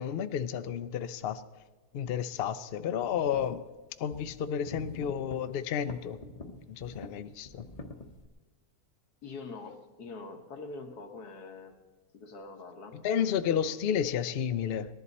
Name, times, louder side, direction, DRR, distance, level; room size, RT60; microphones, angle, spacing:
voice 1, 0.0-1.5 1.9-3.7 4.0-6.2 6.7-7.7 13.0-14.9, left 8 dB, 60° left, 0.6 m, -31 dB
sound 1, 3.0-3.5 4.1-5.4 5.9-7.1 7.4-8.3, left 3 dB, 30° left, 0.8 m, -45 dB
voice 2, 9.2-11.8 12.1-13.0, left 3 dB, 85° left, 1.8 m, -44 dB
19.0 x 11.5 x 4.1 m
omnidirectional pair, 1.6 m